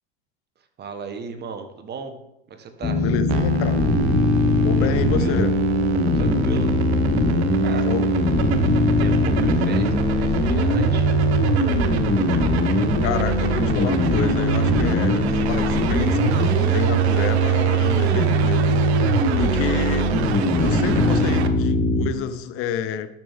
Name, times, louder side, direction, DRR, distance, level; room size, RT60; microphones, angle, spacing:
voice 1, 0.8-2.2 2.5-3.1 4.8-5.4 6.1-6.7 7.6-7.9 9.0-11.1, right 5 dB, 30° right, 7 dB, 1.3 m, -35 dB
sound 1, 2.8-22.1, equal, 20° left, 1.5 m, -20 dB
voice 2, 3.0-3.9 4.6-5.5 7.9-8.1 13.0-18.8 19.4-20.1 20.6-23.1, left 8 dB, 40° left, 12 dB, 0.8 m, -28 dB
sound 2, 3.3-21.5, right 5 dB, 70° right, 1.0 m, -29 dB
11.5 x 7.5 x 3.6 m, 0.86 s
hypercardioid pair, 95°, 34 cm